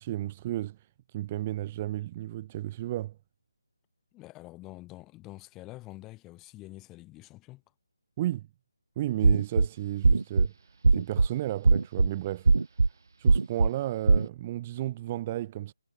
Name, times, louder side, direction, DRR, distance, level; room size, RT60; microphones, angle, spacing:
voice 1, 0.0-3.2 8.2-8.5 9.0-10.5 10.9-12.5 13.2-15.7, right 14 dB, 15° right, 0.9 m, -33 dB
voice 2, 4.1-7.6, left 19 dB, 10° left, 3.3 m, -46 dB
sound 1, 9.2-9.7 10.0-10.5 10.8-11.3 11.6-12.1 12.5-12.9 13.3-13.7 14.1-14.3, right 3 dB, 60° right, 0.5 m, -20 dB
hypercardioid pair, 175°, 2 cm